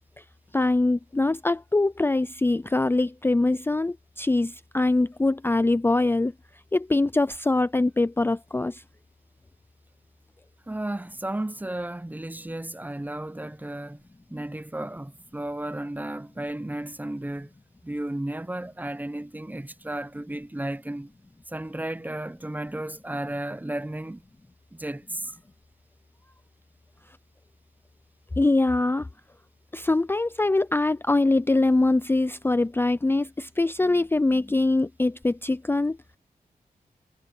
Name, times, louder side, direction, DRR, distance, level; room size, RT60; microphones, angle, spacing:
voice 1, 0.5-6.3 6.7-8.8 28.4-29.1 29.7-36.0, left 2 dB, 15° left, 0.5 m, -23 dB
voice 2, 10.7-14.0 14.3-17.5 17.8-21.1 21.5-24.2 24.7-25.3, right 1 dB, 10° right, 0.8 m, -33 dB
wide cardioid pair, 85°, 15 cm